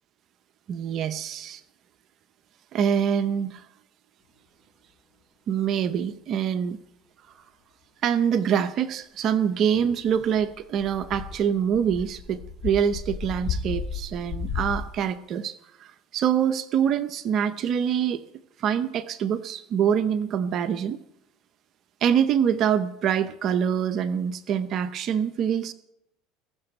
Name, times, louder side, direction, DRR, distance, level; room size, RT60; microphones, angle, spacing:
voice 1, 0.7-1.6 2.7-3.6 5.5-6.8 8.0-18.2 18.6-21.0 22.0-25.7, right 8 dB, 50° right, 10 dB, 0.7 m, -25 dB
sound 1, 10.0-14.9, left 6 dB, 50° left, 3.7 m, -33 dB
20.0 x 6.8 x 9.1 m, 0.84 s
supercardioid pair, 105°, 0 cm